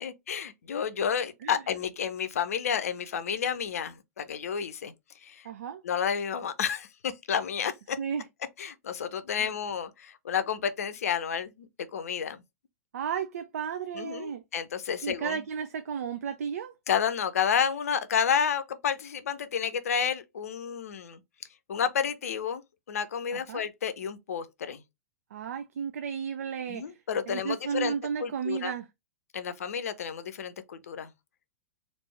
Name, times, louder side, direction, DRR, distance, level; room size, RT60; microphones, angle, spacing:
voice 1, 0.0-4.9 5.2-5.5 5.8-8.0 8.6-12.4 14.0-15.4 16.9-21.2 21.7-22.6 22.9-24.8 26.7-27.9 28.2-28.7 29.3-31.1, left 7 dB, 65° left, 0.5 m, -30 dB
voice 2, 5.4-5.8 8.0-8.3 9.4-9.5 12.9-14.4 15.0-16.7 23.3-23.7 25.3-28.9, right 7 dB, 65° right, 0.4 m, -33 dB
3.4 x 2.5 x 3.2 m
figure-of-eight pair, 100°, 9 cm